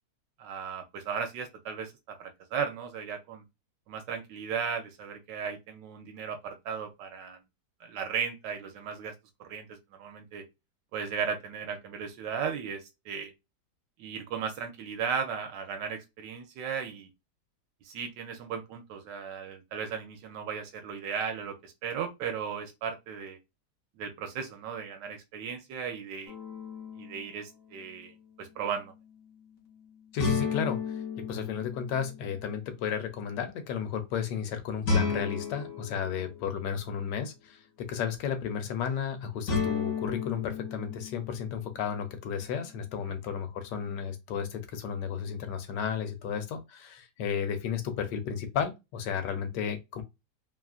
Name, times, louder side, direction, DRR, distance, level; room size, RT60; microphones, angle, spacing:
voice 1, 0.4-3.4 3.9-7.4 7.8-9.1 9.4-10.4 10.9-13.3 14.0-17.1 17.8-23.4 24.0-26.3 26.9-28.1 28.4-28.9 43.1-43.2, right 6 dB, 85° right, 1.2 m, -36 dB
sound 1, 26.3-27.2 30.2-32.4 34.8-37.0 39.5-41.7, left 5 dB, 55° left, 1.4 m, -33 dB
voice 2, 30.1-30.8 31.2-50.0, left 7 dB, 80° left, 1.3 m, -33 dB
3.1 x 2.4 x 2.4 m
omnidirectional pair, 1.8 m